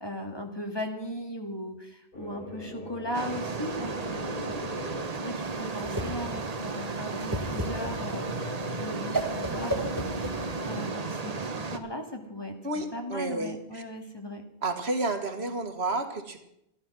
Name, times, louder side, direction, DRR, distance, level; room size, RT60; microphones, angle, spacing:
voice 1, 0.0-10.2 10.4-14.4, equal, 25° left, 3 dB, 2.0 m, -38 dB
sound 1, 2.1-5.1 7.5-10.9, left 1 dB, 55° left, 3.5 m, -41 dB
sound 2, 3.1-11.8, right 4 dB, 40° right, 1.0 m, -34 dB
Whoosh swoosh swish, 5.4-10.9, right 1 dB, 20° right, 1.9 m, -34 dB
voice 2, 12.6-13.8 14.6-16.4, right 2 dB, 80° right, 7 dB, 1.9 m, -31 dB
14.0 x 12.0 x 6.0 m, 0.80 s
omnidirectional pair, 1.1 m